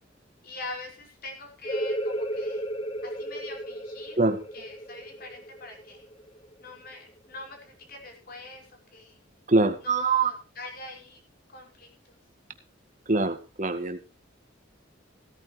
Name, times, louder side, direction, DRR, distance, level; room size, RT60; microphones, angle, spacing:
voice 1, 0.4-2.7 3.0-4.2 4.5-6.1 6.6-9.2 9.8-11.2 11.5-11.9, left 2 dB, 50° left, 2 dB, 5.5 m, -43 dB
sound 1, 1.6-7.0, equal, 25° left, 1.9 m, -34 dB
voice 2, 9.5-10.3 13.1-14.0, right 3 dB, 40° right, 8 dB, 1.8 m, -24 dB
17.0 x 13.5 x 3.3 m, 0.31 s
head